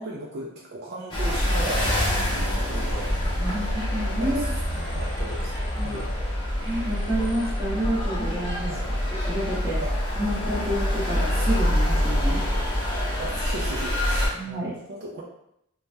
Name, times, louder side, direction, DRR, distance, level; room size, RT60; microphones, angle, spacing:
voice 1, 0.0-2.2 2.7-3.4 4.2-4.5 4.8-6.2 8.6-9.0 9.8-10.0 13.2-15.2, right 1 dB, 50° right, -3 dB, 0.4 m, -37 dB
sound 1, 1.1-14.3, equal, 20° left, 0.7 m, -26 dB
voice 2, 3.4-4.4 5.8-6.0 6.6-8.7 9.2-9.8 10.2-12.4 14.3-14.7, right 1 dB, 10° right, -8 dB, 0.9 m, -29 dB
3.2 x 2.2 x 2.6 m, 0.79 s
head